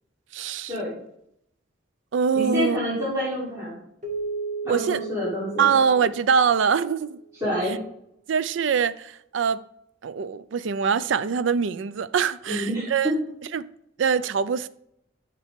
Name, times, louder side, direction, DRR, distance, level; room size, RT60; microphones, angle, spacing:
voice 1, 0.3-0.7 2.1-2.8 4.7-5.0 5.6-7.2 8.3-9.6 10.0-13.1 13.5-13.7 14.0-14.7, right 6 dB, 80° right, 0.4 m, -23 dB
voice 2, 2.3-3.8 4.7-5.7 7.4-7.8 12.5-13.1, equal, 15° right, 3.5 m, -28 dB
Keyboard (musical), 4.0-7.0, right 4 dB, 40° right, 1.4 m, -34 dB
9.1 x 6.8 x 3.6 m
head